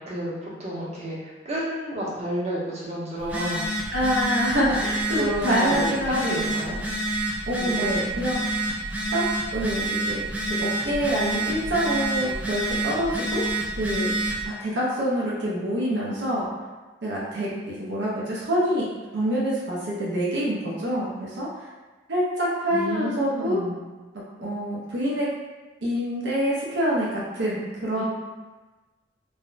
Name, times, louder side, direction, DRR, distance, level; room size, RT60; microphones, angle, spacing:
voice 1, 0.1-1.2 1.4-3.6 5.1-6.8 7.6-7.9 8.1-8.3 22.7-23.7 28.0-28.1, equal, 35° right, -7 dB, 0.8 m, -30 dB
Telephone, 3.2-14.5, right 2 dB, 10° right, 0.3 m, -28 dB
voice 2, 3.9-6.5 7.5-8.5 9.1-9.2 9.5-10.2 10.6-14.1 14.4-16.5 17.0-18.9 19.1-21.7 22.1-23.6 24.1-25.3 25.8-28.0, equal, 80° right, -6 dB, 0.6 m, -26 dB
3.4 x 2.1 x 2.4 m, 1.2 s
head